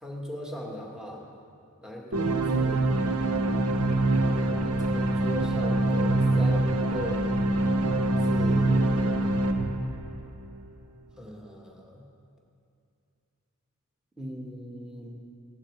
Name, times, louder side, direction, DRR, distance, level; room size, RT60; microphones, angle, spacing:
voice 1, 0.0-1.2 1.8-2.9 4.2-7.4 8.2-9.3 11.2-12.0 14.2-15.2, left 1 dB, 5° right, -1 dB, 1.8 m, -39 dB
sound 1, 2.1-10.6, right 2 dB, 90° right, 1.0 m, -25 dB
16.5 x 12.0 x 4.8 m, 2.5 s
head